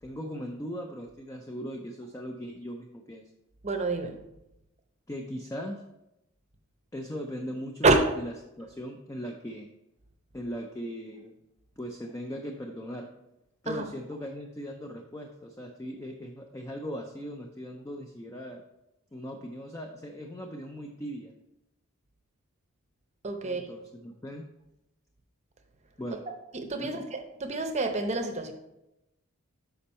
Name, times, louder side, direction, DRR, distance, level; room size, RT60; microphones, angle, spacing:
voice 1, 0.0-3.3 5.1-5.8 6.9-9.7 10.3-11.3 11.8-13.1 13.6-18.6 19.1-21.3 23.4-24.5 26.0-26.2 26.8-27.1, equal, 15° left, 3 dB, 0.4 m, -39 dB
voice 2, 3.6-4.2 7.8-8.1 13.7-13.8 23.2-23.7 26.5-28.5, right 3 dB, 30° right, 5 dB, 0.7 m, -27 dB
7.0 x 5.2 x 4.2 m, 0.91 s
head